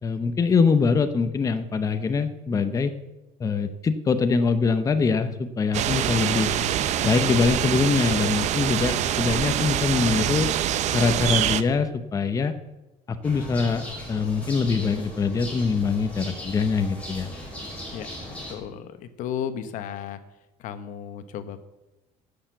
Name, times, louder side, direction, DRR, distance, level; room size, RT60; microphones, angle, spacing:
voice 1, 0.0-2.9 3.4-6.5 7.0-10.5 10.9-12.5 13.2-17.3, left 5 dB, 25° left, 9 dB, 0.7 m, -23 dB
sound 1, 5.7-11.6, right 11 dB, 55° right, 0.7 m, -25 dB
sound 2, 13.2-18.5, left 1 dB, 10° left, 5.2 m, -38 dB
voice 2, 18.5-20.2 20.6-21.6, left 9 dB, 70° left, 11 dB, 1.0 m, -34 dB
12.0 x 6.7 x 8.1 m, 1.0 s
cardioid pair, 130°, 14 cm